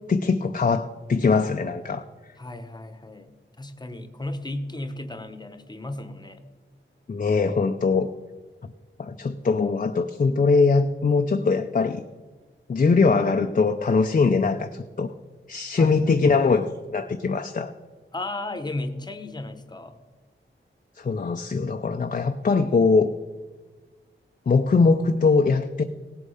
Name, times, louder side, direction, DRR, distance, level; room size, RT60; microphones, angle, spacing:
voice 1, 0.1-2.0 7.1-8.1 9.0-12.0 12.7-15.1 15.5-17.7 21.0-23.1 24.5-25.8, left 4 dB, 40° left, 6 dB, 0.6 m, -21 dB
voice 2, 2.4-3.3 3.6-6.4 15.8-16.2 18.1-20.0, left 2 dB, 20° left, 10 dB, 1.0 m, -34 dB
17.5 x 8.2 x 5.6 m, 1.4 s
wide cardioid pair, 135°, 21 cm